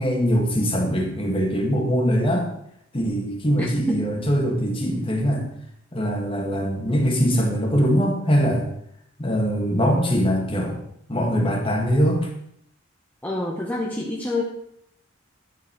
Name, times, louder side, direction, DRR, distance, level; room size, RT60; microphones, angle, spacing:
voice 1, 0.0-2.5 2.9-5.5 5.9-8.7 9.2-10.8 11.1-12.3, equal, 25° left, 1 dB, 1.9 m, -22 dB
voice 2, 3.6-4.0 13.2-14.4, left 2 dB, 10° left, -3 dB, 1.1 m, -27 dB
11.0 x 7.0 x 4.6 m, 0.73 s
head